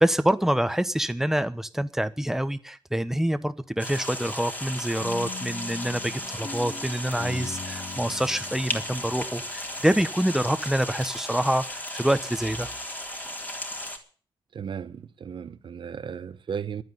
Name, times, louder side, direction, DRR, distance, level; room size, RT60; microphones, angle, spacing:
voice 1, 0.0-12.7, right 1 dB, 5° right, 1.1 m, -26 dB
sound 1, 3.8-14.0, left 1 dB, 20° left, 3.7 m, -35 dB
sound 2, 5.0-10.1, left 5 dB, 65° left, 2.7 m, -41 dB
voice 2, 14.5-16.8, right 7 dB, 70° right, 1.1 m, -35 dB
11.5 x 9.2 x 9.8 m
wide cardioid pair, 95°, 9 cm